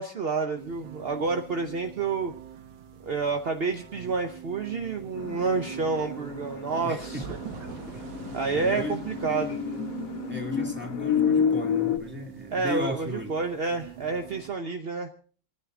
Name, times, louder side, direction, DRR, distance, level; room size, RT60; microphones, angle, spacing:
voice 1, 0.0-2.3 3.0-7.3 8.3-9.6 12.5-15.1, right 4 dB, 50° right, 6 dB, 0.7 m, -29 dB
sound 1, 0.6-14.5, right 8 dB, 75° right, 1.8 m, -42 dB
sound 2, 5.2-12.0, left 7 dB, 55° left, 1.1 m, -30 dB
voice 2, 6.8-7.2 7.8-8.0 8.5-9.0 10.3-13.3, left 1 dB, 5° right, 2 dB, 2.2 m, -36 dB
29.0 x 10.0 x 3.7 m, 0.43 s
omnidirectional pair, 2.1 m